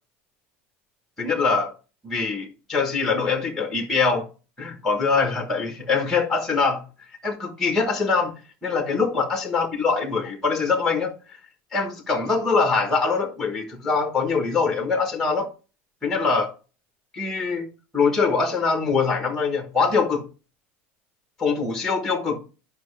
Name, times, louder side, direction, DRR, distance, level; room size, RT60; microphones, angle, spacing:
voice 1, 1.2-1.7 2.0-4.2 4.6-6.8 7.2-8.3 8.6-11.1 11.7-15.5 16.0-16.5 17.1-17.7 17.9-20.2 21.4-22.4, left 4 dB, 5° left, 1.2 m, -23 dB
10.5 x 5.5 x 3.2 m
cardioid pair, 175°, 5 cm